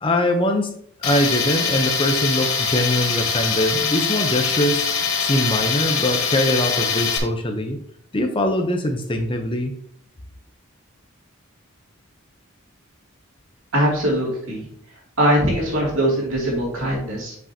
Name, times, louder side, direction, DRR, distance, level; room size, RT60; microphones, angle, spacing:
voice 1, 0.0-0.7 1.0-4.9 5.2-7.8 8.1-9.7, left 1 dB, 25° left, 4 dB, 0.6 m, -22 dB
Tools, 1.0-7.2, left 5 dB, 85° left, 1.1 m, -23 dB
voice 2, 13.7-14.7 15.2-17.4, equal, 65° right, -3 dB, 2.6 m, -21 dB
7.3 x 5.9 x 2.8 m, 0.64 s
head